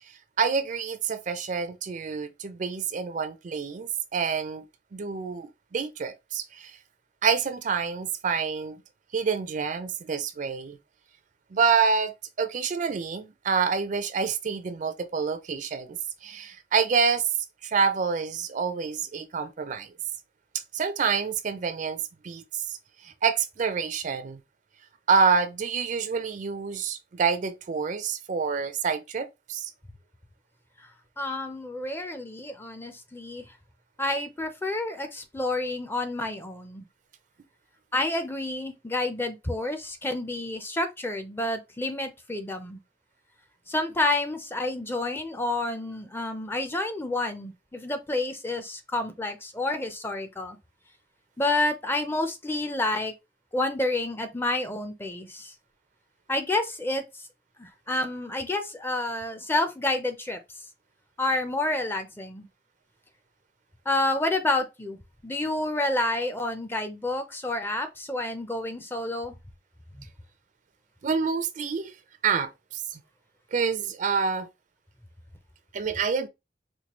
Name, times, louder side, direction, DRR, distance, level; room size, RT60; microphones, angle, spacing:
voice 1, 0.4-4.6 4.9-6.8 7.2-8.8 9.1-10.8 11.5-12.1 12.4-17.2 17.6-19.9 20.7-22.8 23.0-24.4 25.1-29.7 71.0-71.9 72.2-73.0 73.5-74.5 75.7-76.3, right 5 dB, 45° right, 0.4 m, -27 dB
voice 2, 31.2-33.5 34.0-36.8 37.9-42.8 43.7-50.6 51.4-53.1 53.5-55.5 56.3-57.0 57.6-60.4 61.2-62.5 63.9-65.0 65.2-69.3 70.0-70.1, left 2 dB, 15° left, 0.5 m, -29 dB
4.5 x 2.2 x 2.9 m
head